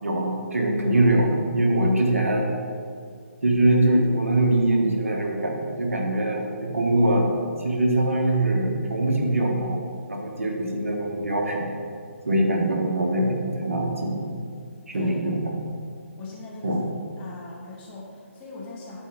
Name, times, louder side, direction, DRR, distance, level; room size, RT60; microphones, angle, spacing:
voice 1, 0.0-2.5 3.4-11.7 12.2-14.3 14.9-15.5 16.6-16.8, right 1 dB, 75° right, 1 dB, 1.5 m, -23 dB
voice 2, 16.2-16.8 17.2-19.0, left 3 dB, 15° left, -5 dB, 1.7 m, -40 dB
11.5 x 4.5 x 4.5 m, 2.2 s
figure-of-eight pair, 140°, 8 cm